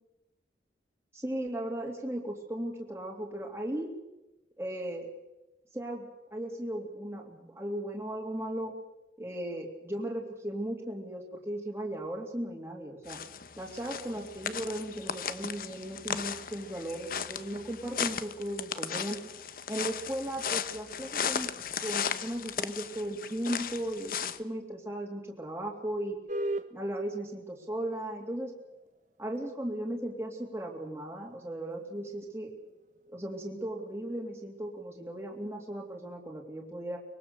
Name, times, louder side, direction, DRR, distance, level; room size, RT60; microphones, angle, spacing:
voice 1, 1.1-3.9 4.6-5.1 5.7-8.7 9.2-13.2 13.6-19.2 19.7-21.5 21.8-26.2 26.7-28.5 29.2-32.5 33.1-37.0, right 1 dB, 15° right, -2 dB, 2.7 m, -36 dB
sound 1, 13.1-24.4, left 7 dB, 55° left, 1.0 m, -36 dB
sound 2, 26.3-36.1, right 1 dB, 45° right, 1.1 m, -44 dB
24.0 x 21.5 x 6.9 m, 0.99 s
head